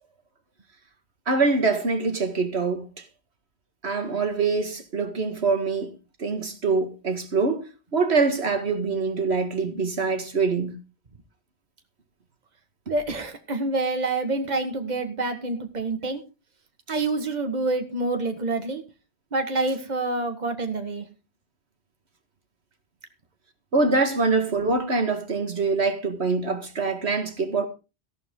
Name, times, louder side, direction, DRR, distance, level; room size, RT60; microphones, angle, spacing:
voice 1, 1.3-3.0 3.8-5.9 6.2-10.8 23.7-27.7, right 4 dB, 75° right, 2.1 m, -24 dB
voice 2, 12.9-16.2 16.9-18.8 19.3-21.1, right 2 dB, 40° right, 1.8 m, -27 dB
15.5 x 11.5 x 3.8 m
omnidirectional pair, 1.1 m